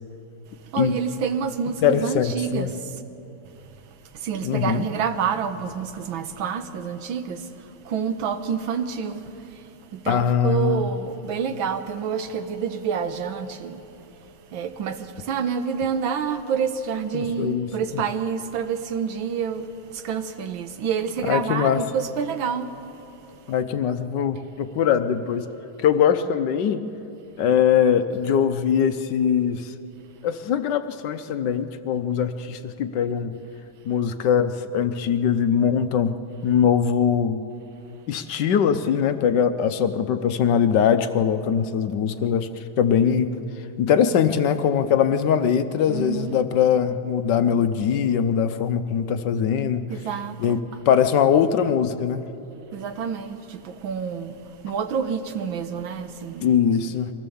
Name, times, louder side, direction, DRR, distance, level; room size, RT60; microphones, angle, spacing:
voice 1, 0.7-2.8 4.2-7.4 7.8-9.2 9.9-13.8 14.5-22.7 45.9-46.4 49.9-50.6 52.7-54.4 54.6-56.5, right 7 dB, 75° right, 1.8 m, -28 dB
voice 2, 1.8-2.7 4.4-4.9 10.1-10.9 17.1-17.7 21.2-21.8 23.5-25.5 25.8-26.8 27.4-29.7 30.2-33.3 33.8-36.1 36.4-37.4 38.1-43.3 43.8-49.8 50.4-52.2 56.4-57.1, left 8 dB, 65° left, 1.3 m, -21 dB
23.5 x 17.5 x 7.0 m
omnidirectional pair, 2.2 m